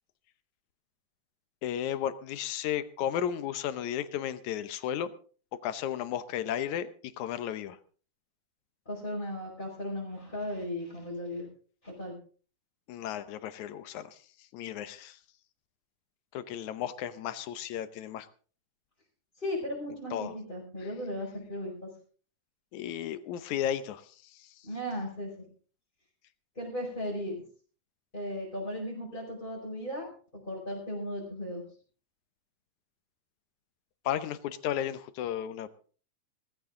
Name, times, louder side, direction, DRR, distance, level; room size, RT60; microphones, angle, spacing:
voice 1, 1.6-5.1 5.6-7.8 12.9-14.2 14.5-15.2 16.3-18.3 20.1-20.3 22.7-24.0 24.4-24.5 34.1-35.7, left 10 dB, 75° left, 12 dB, 2.2 m, -34 dB
voice 2, 8.9-11.5 11.8-12.1 19.4-21.9 24.6-25.3 26.6-27.3 28.1-30.1 30.4-31.6, left 1 dB, 15° left, -6 dB, 5.3 m, -36 dB
17.5 x 14.5 x 3.7 m, 0.40 s
omnidirectional pair, 3.5 m